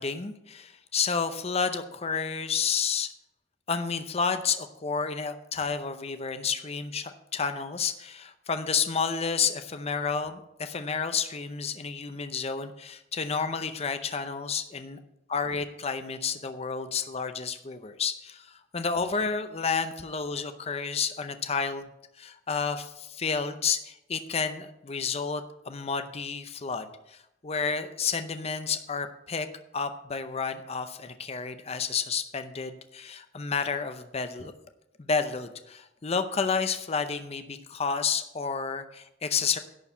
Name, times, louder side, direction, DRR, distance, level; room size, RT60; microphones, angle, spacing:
voice 1, 0.0-3.1 3.7-15.0 15.3-21.9 22.2-29.5 29.7-34.5 35.0-39.6, left 5 dB, 35° left, 9 dB, 0.6 m, -30 dB
11.0 x 4.7 x 8.2 m, 0.84 s
head